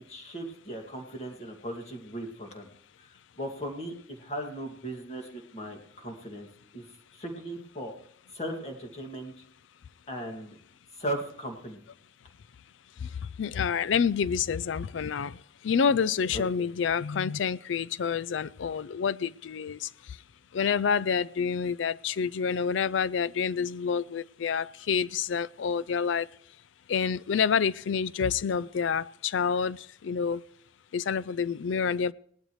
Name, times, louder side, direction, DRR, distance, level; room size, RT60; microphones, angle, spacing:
voice 1, 0.1-2.7 3.4-6.5 6.7-6.8 7.1-7.9 8.3-9.3 10.1-10.6 11.0-11.8 16.3-16.6, right 1 dB, 35° left, 2.2 m, -37 dB
voice 2, 13.4-15.4 15.6-19.9 20.5-26.3 26.9-30.4 30.9-32.1, left 6 dB, 65° left, 0.4 m, -28 dB
18.0 x 12.0 x 3.2 m
head